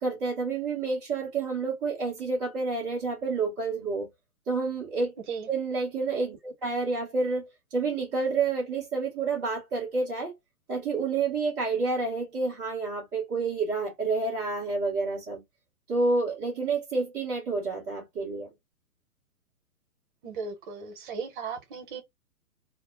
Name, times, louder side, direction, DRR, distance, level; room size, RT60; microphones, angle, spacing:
voice 1, 0.0-4.1 4.5-5.1 5.5-10.3 10.7-15.4 15.9-18.5, right 3 dB, 10° right, 0.5 m, -29 dB
voice 2, 20.2-22.0, right 5 dB, 35° right, 0.9 m, -36 dB
2.1 x 2.0 x 3.7 m
figure-of-eight pair, 120°, 44 cm